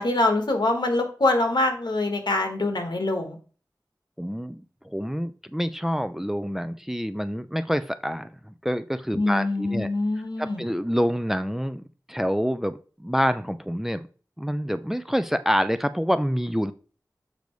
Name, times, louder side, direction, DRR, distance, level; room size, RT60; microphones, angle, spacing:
voice 1, 0.0-3.4 9.1-10.6, left 2 dB, 75° left, 4 dB, 1.4 m, -24 dB
voice 2, 4.2-9.9 10.4-11.8 12.1-14.1 14.4-16.7, equal, 5° right, 10 dB, 0.4 m, -27 dB
6.8 x 5.2 x 3.1 m, 0.38 s
wide cardioid pair, 60°, 7 cm